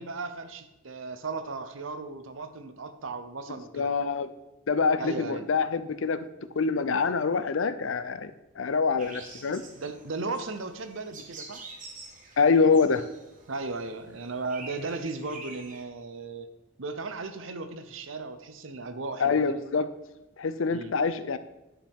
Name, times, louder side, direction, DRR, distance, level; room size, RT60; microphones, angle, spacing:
voice 1, 0.0-3.9 5.0-5.5 9.7-11.6 13.5-16.5 16.8-19.6 20.7-21.0, right 3 dB, 80° right, 10 dB, 0.8 m, -36 dB
voice 2, 3.7-4.3 4.7-6.2 6.5-8.3 8.6-9.6 12.4-13.0 19.2-19.9 20.4-21.4, left 5 dB, 80° left, 12 dB, 0.6 m, -25 dB
sound 1, 9.0-15.8, right 3 dB, 40° right, 1.3 m, -47 dB
10.0 x 7.2 x 3.6 m, 1.0 s
head